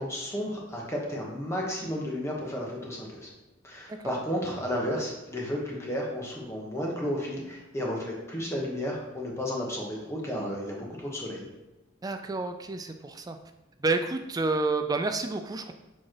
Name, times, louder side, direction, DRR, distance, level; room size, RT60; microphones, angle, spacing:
voice 1, 0.0-3.3 3.6-11.4, equal, 15° left, -2 dB, 1.1 m, -33 dB
voice 2, 12.0-13.4 13.8-15.7, right 3 dB, 20° right, 7 dB, 0.3 m, -29 dB
7.2 x 4.6 x 3.0 m, 1.1 s
head